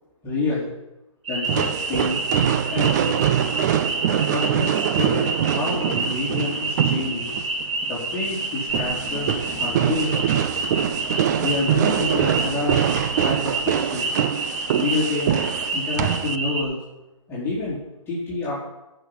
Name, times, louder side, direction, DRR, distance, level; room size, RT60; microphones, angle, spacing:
voice 1, 0.2-0.7 1.3-2.2 2.7-3.2 4.3-7.4 7.9-10.1 11.4-14.1 14.7-15.4 15.7-16.8 17.3-17.8 18.1-18.5, left 3 dB, 15° left, -9 dB, 3.3 m, -28 dB
sound 1, 1.2-16.6, right 2 dB, 65° right, 3.3 m, -29 dB
sound 2, 1.5-16.4, right 10 dB, 35° right, 0.5 m, -24 dB
sound 3, 8.7-13.7, equal, 10° right, 4.5 m, -39 dB
11.0 x 6.3 x 8.6 m, 0.97 s
figure-of-eight pair, 140°, 17 cm